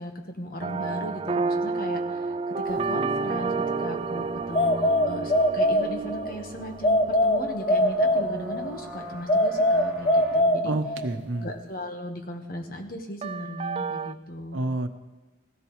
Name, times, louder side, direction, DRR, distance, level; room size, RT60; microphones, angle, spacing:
voice 1, 0.0-10.7 11.4-14.6, equal, 50° left, 5 dB, 1.3 m, -37 dB
sound 1, 0.6-7.8 13.2-14.1, right 4 dB, 30° right, 0.3 m, -30 dB
sound 2, 2.7-10.4, right 2 dB, 5° right, 3.7 m, -41 dB
sound 3, 4.5-6.3 6.8-8.7 9.3-11.2, left 1 dB, 25° left, 0.6 m, -22 dB
voice 2, 10.6-11.5 14.5-14.9, right 2 dB, 80° right, 7 dB, 1.0 m, -28 dB
17.0 x 14.5 x 3.2 m, 1.1 s
head